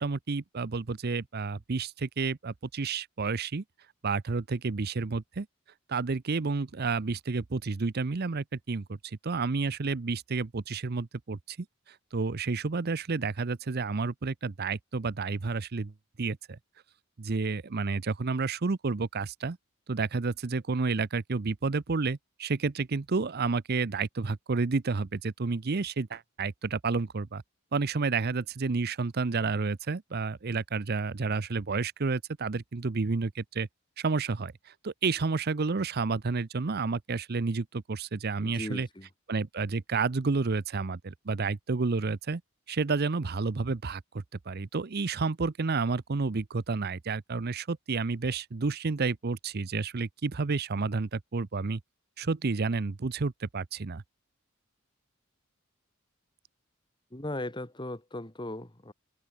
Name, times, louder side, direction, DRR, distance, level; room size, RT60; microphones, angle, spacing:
voice 1, 0.0-3.6 4.0-5.5 5.9-11.6 11.9-15.9 16.2-16.6 17.2-19.6 19.9-27.4 27.7-33.7 34.0-38.9 39.3-42.4 42.7-51.8 52.2-54.0, right 4 dB, 50° right, 0.6 m, -30 dB
voice 2, 38.4-39.1 57.1-58.9, left 1 dB, 20° left, 2.1 m, -38 dB
head